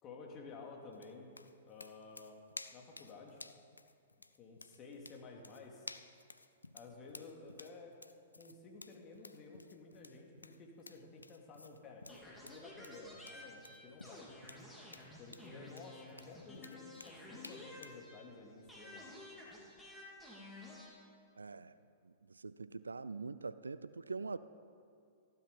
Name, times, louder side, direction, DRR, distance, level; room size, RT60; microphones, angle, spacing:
voice 1, 0.0-1.3 1.6-2.4 2.7-3.4 4.4-5.9 6.7-7.9 8.3-14.3 15.2-19.1, left 3 dB, 30° left, 1 dB, 2.6 m, -53 dB
sound 1, 0.9-18.0, left 3 dB, 85° left, 0.5 m, -54 dB
sound 2, 12.1-18.3 18.7-20.9, left 1 dB, 5° left, 3.3 m, -53 dB
voice 2, 21.4-21.8 22.0-24.4, right 4 dB, 80° right, 15 dB, 0.4 m, -44 dB
15.0 x 11.5 x 5.4 m, 2.4 s
figure-of-eight pair, 110°, 0 cm